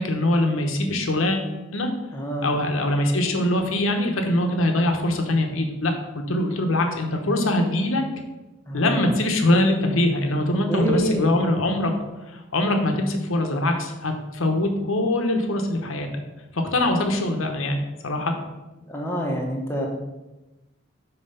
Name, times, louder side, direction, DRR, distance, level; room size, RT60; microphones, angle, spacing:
voice 1, 0.0-1.9 2.4-8.0 8.7-11.9 12.3-16.1 16.5-18.3, left 1 dB, 75° left, 4 dB, 1.0 m, -23 dB
voice 2, 2.1-2.5 8.7-9.1 10.7-11.3 18.9-19.9, equal, 10° left, -1 dB, 1.0 m, -26 dB
5.6 x 4.3 x 5.6 m, 1.1 s
head